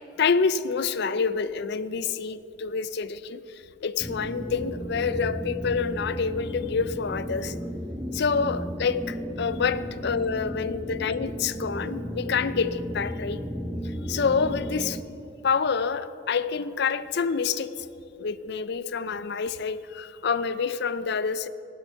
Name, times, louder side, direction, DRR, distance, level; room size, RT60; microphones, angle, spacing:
voice 1, 0.0-3.4 3.8-7.5 8.1-13.4 14.1-15.0 15.4-17.7 18.2-21.5, left 5 dB, 60° left, 0.5 m, -27 dB
sound 1, 4.0-15.0, equal, 5° right, 0.6 m, -34 dB
15.0 x 11.0 x 7.0 m
head